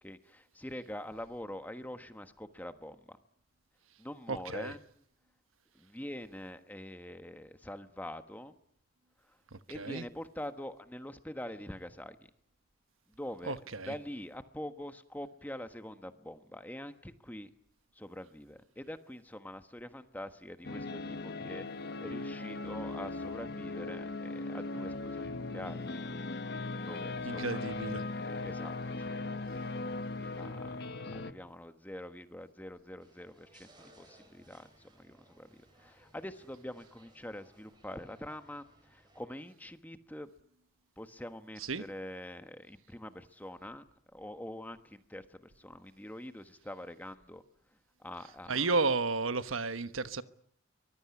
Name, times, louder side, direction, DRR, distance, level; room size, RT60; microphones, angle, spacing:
voice 1, 0.0-3.2 4.0-4.8 5.7-8.5 9.2-9.4 9.7-12.3 13.1-13.6 13.8-17.5 17.9-26.6 26.8-27.6 28.2-29.4 29.7-30.8 31.1-40.3 41.0-43.8 44.1-47.4 48.0-48.7, left 1 dB, 10° left, 1.3 m, -45 dB
voice 2, 4.3-4.7 9.5-10.0 13.5-13.9 27.2-28.0 41.7-41.8 48.5-50.2, right 3 dB, 85° right, 1.3 m, -33 dB
sound 1, 20.6-31.3, left 3 dB, 50° left, 1.3 m, -38 dB
sound 2, 33.0-39.2, right 1 dB, 20° right, 6.9 m, -63 dB
23.5 x 20.5 x 9.8 m
head